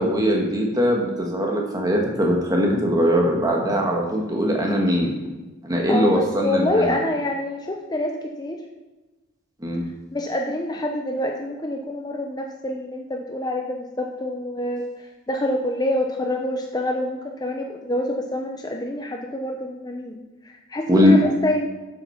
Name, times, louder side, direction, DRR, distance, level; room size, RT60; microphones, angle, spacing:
voice 1, 0.0-5.1 5.6-6.9 9.6-9.8 20.9-21.2, equal, 15° right, 0 dB, 1.4 m, -20 dB
voice 2, 5.9-8.6 10.1-20.2 20.4-21.7, left 1 dB, 20° left, 2 dB, 0.6 m, -26 dB
8.0 x 7.2 x 5.7 m, 1.2 s
head